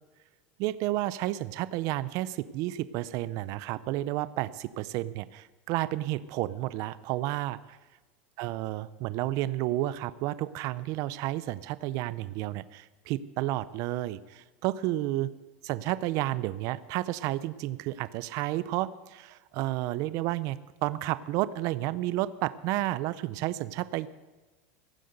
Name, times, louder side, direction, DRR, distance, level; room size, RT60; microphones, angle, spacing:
voice 1, 0.6-7.8 8.4-15.3 15.6-24.1, right 16 dB, 50° right, 17 dB, 0.5 m, -31 dB
15.0 x 7.8 x 7.8 m, 1.2 s
supercardioid pair, 135°, 7 cm